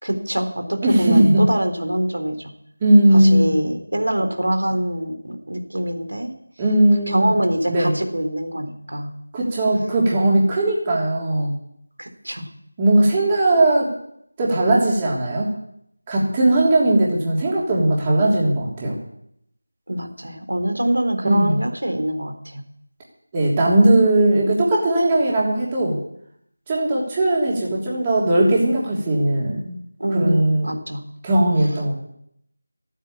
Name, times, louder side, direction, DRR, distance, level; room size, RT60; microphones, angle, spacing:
voice 1, 0.0-2.5 3.1-6.3 7.1-9.1 12.0-12.5 19.9-22.6 30.0-31.0, right 1 dB, 85° right, 6 dB, 3.7 m, -24 dB
voice 2, 0.8-1.4 2.8-3.5 6.6-7.3 7.7-7.9 9.3-11.5 12.8-13.9 14.4-15.5 16.1-19.0 21.2-21.6 23.3-26.0 26.7-29.7 30.1-30.7 31.2-31.9, right 1 dB, 15° right, -4 dB, 3.2 m, -18 dB
15.0 x 9.4 x 8.5 m, 0.72 s
figure-of-eight pair, 170°, 0 cm